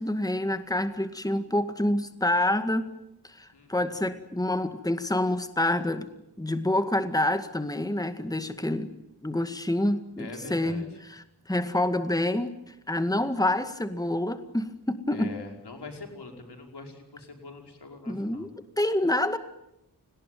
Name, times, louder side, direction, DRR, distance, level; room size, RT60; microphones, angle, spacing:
voice 1, 0.0-2.9 3.2-6.1 6.4-8.9 9.2-10.8 11.1-15.3 18.1-18.5 18.8-19.4, left 1 dB, 10° left, 9 dB, 2.0 m, -27 dB
voice 2, 10.2-10.9 15.1-18.5, left 3 dB, 85° left, 3 dB, 5.4 m, -43 dB
29.0 x 19.0 x 9.3 m, 0.86 s
cardioid pair, 50°, 39 cm